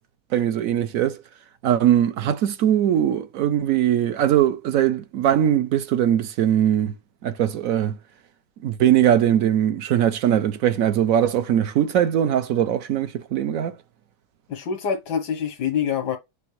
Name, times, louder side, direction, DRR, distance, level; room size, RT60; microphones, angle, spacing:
voice 1, 0.3-1.2 1.6-6.9 7.2-8.0 8.6-13.7, right 10 dB, 65° right, 0.9 m, -21 dB
voice 2, 14.5-16.2, left 7 dB, 90° left, 1.5 m, -25 dB
7.0 x 4.4 x 3.1 m
omnidirectional pair, 1.8 m